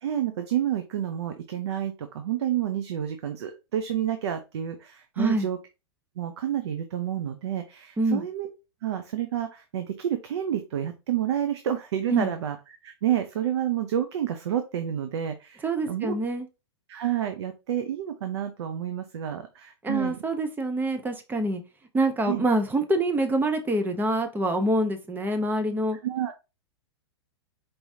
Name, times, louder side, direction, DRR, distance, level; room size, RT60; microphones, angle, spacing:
voice 1, 0.0-5.6 6.2-8.5 8.8-16.1 16.9-20.2 22.3-22.4 26.0-26.3, right 10 dB, 70° right, 8 dB, 0.6 m, -29 dB
voice 2, 5.2-5.5 8.0-8.2 12.1-12.3 15.6-16.5 19.8-21.6 21.9-26.0, right 1 dB, 15° right, 7 dB, 0.8 m, -25 dB
4.6 x 3.1 x 2.7 m, 0.28 s
hypercardioid pair, 105°, 15 cm